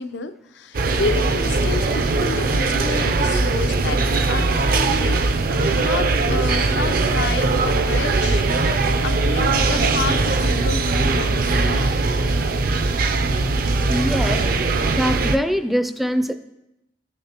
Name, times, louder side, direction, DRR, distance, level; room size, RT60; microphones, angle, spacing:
voice 1, 0.0-5.2 5.8-8.4 9.0-11.9 12.3-12.6, left 4 dB, 80° left, 10 dB, 0.6 m, -30 dB
sound 1, 0.7-15.4, right 3 dB, 55° right, 0.5 m, -20 dB
voice 2, 13.9-14.4 14.9-16.3, equal, ahead, 9 dB, 0.4 m, -22 dB
14.0 x 6.8 x 2.9 m, 0.90 s
head